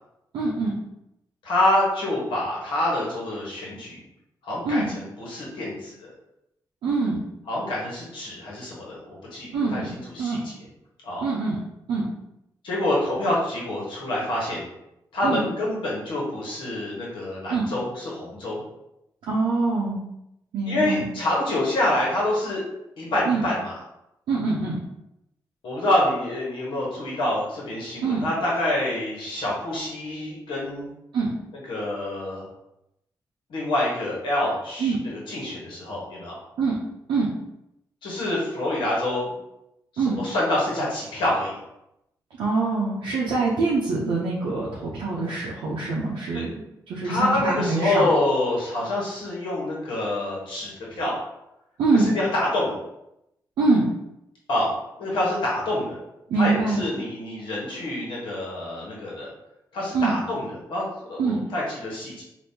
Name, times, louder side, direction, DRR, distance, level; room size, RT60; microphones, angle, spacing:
voice 1, 0.3-0.7 4.6-4.9 6.8-7.2 9.5-9.9 10.2-10.4 11.2-11.6 11.9-12.1 15.2-15.5 17.5-17.7 19.3-20.0 20.5-21.1 23.3-23.4 24.3-24.8 28.0-28.3 31.1-31.3 34.8-35.0 36.6-36.8 37.1-37.3 40.0-40.2 42.4-46.5 46.9-48.1 51.8-52.1 53.6-53.9 56.3-56.9 59.9-60.1 61.2-61.4, right 3 dB, 85° right, -5 dB, 0.6 m, -24 dB
voice 2, 1.4-4.0 4.4-6.1 7.5-10.5 11.0-11.3 12.6-14.6 15.1-18.6 20.7-22.6 23.0-23.8 25.6-30.9 31.7-32.5 33.5-36.4 38.0-39.3 39.9-41.6 46.3-46.4 47.0-51.2 51.9-52.7 54.5-54.7 55.0-56.0 56.4-59.3 59.7-62.2, left 1 dB, 85° left, -4 dB, 1.2 m, -26 dB
3.5 x 2.5 x 2.7 m, 0.85 s
supercardioid pair, 50°, 8 cm